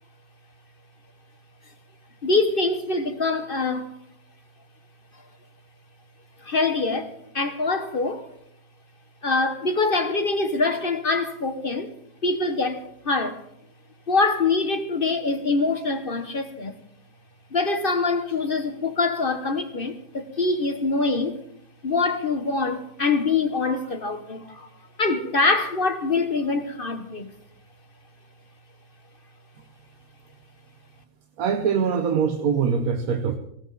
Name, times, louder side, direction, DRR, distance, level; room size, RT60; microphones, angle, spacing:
voice 1, 2.2-3.9 6.4-8.3 9.2-11.9 12.2-13.4 14.1-16.7 17.5-21.4 21.8-24.7 25.0-27.3, left 3 dB, 40° left, 0.9 m, -24 dB
voice 2, 31.4-33.4, right 6 dB, 55° right, 1.2 m, -23 dB
19.0 x 16.5 x 3.9 m
omnidirectional pair, 2.0 m